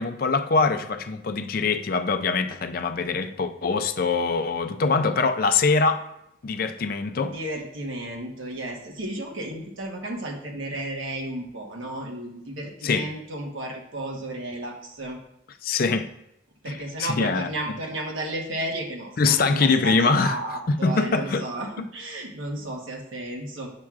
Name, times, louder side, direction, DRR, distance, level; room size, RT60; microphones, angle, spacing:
voice 1, 0.0-6.0 6.4-7.3 12.8-13.1 15.6-16.1 16.7-17.5 19.2-20.4 20.7-21.4, left 4 dB, 45° left, 0.4 m, -23 dB
voice 2, 7.3-15.2 16.6-23.7, right 1 dB, 85° right, 1.2 m, -33 dB
7.3 x 5.9 x 2.4 m
head